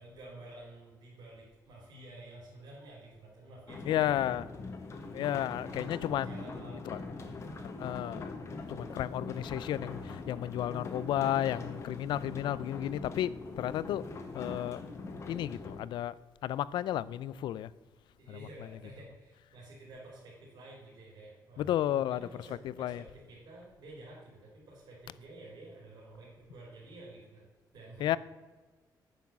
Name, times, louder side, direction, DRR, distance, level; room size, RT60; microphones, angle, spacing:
voice 1, 0.0-4.5 5.3-7.7 18.2-27.5 27.7-28.2, right 2 dB, 65° right, 4.3 m, -51 dB
sound 1, 3.7-15.8, left 3 dB, 35° left, 1.4 m, -42 dB
voice 2, 3.9-4.4 5.1-6.3 7.8-8.3 8.7-14.1 14.3-14.8 15.3-16.2 16.4-17.7 18.3-18.4 21.6-22.3 22.8-23.0 28.0-28.2, left 12 dB, 90° left, 0.4 m, -32 dB
9.5 x 7.1 x 7.3 m
cardioid pair, 160°, 8 cm